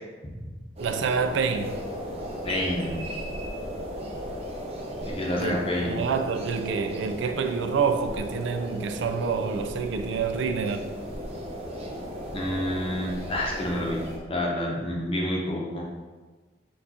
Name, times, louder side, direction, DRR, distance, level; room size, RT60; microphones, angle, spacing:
sound 1, 0.8-14.2, equal, 35° right, 0.6 m, -36 dB
voice 1, 0.8-1.8 5.3-5.6 5.8-10.9, right 5 dB, 80° right, 0.4 m, -27 dB
voice 2, 2.4-3.1 5.0-6.0 12.3-14.0 14.3-15.8, left 1 dB, 30° left, 0.8 m, -28 dB
4.5 x 2.5 x 4.2 m
head